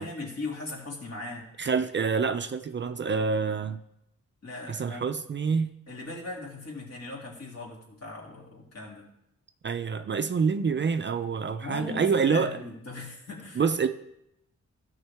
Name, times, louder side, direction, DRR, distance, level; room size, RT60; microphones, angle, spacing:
voice 1, 0.0-1.5 4.4-5.1 5.9-9.1 11.6-13.6, left 2 dB, 55° left, 2.6 m, -39 dB
voice 2, 1.6-3.8 4.7-5.7 9.6-12.6 13.6-13.9, right 5 dB, 40° right, 0.4 m, -27 dB
15.5 x 6.4 x 3.5 m
wide cardioid pair, 165°, 30 cm